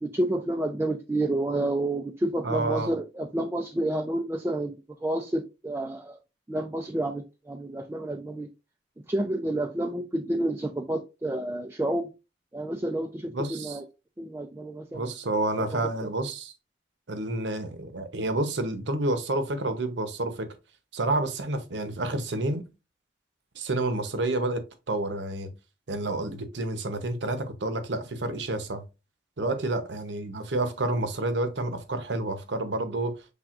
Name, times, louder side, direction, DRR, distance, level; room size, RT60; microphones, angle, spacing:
voice 1, 0.0-6.2 6.5-8.5 9.1-12.1 12.5-13.9 14.2-15.1 15.6-15.7 16.0-16.1 29.4-29.6, right 1 dB, 15° right, 0.3 m, -30 dB
voice 2, 2.4-2.9 13.3-13.8 14.9-16.5 17.1-20.5 20.9-22.6 23.5-24.6 24.9-25.5 25.9-28.8 29.4-33.1, right 2 dB, 90° right, 0.8 m, -29 dB
6.0 x 3.4 x 2.4 m
head